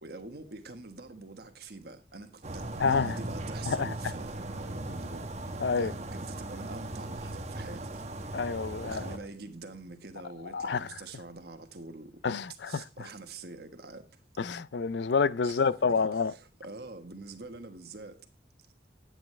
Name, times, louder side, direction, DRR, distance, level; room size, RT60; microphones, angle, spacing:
voice 1, 0.0-5.2 5.8-8.0 8.8-12.1 12.6-14.0 15.4-18.3, right 3 dB, 60° right, 1.4 m, -45 dB
sound 1, 2.4-9.2, right 1 dB, 40° right, 1.2 m, -38 dB
voice 2, 2.8-3.1 3.7-3.9 5.6-5.9 8.3-9.0 10.5-10.8 12.2-12.7 14.4-16.3, left 5 dB, 75° left, 0.5 m, -28 dB
10.0 x 9.2 x 3.3 m
head